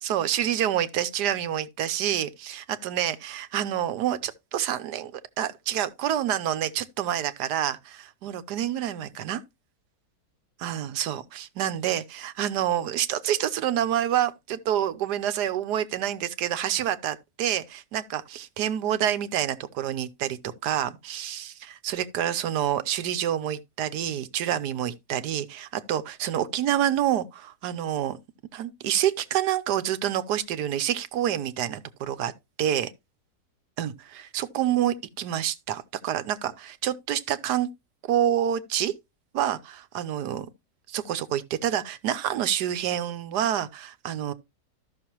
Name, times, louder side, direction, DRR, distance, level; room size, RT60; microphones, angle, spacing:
voice 1, 0.0-9.4 10.6-28.2 28.5-32.3 32.6-32.9 33.8-37.7 38.1-38.9 39.3-40.5 40.9-44.3, right 11 dB, 80° right, 1.4 m, -28 dB
13.0 x 6.2 x 3.0 m
omnidirectional pair, 1.7 m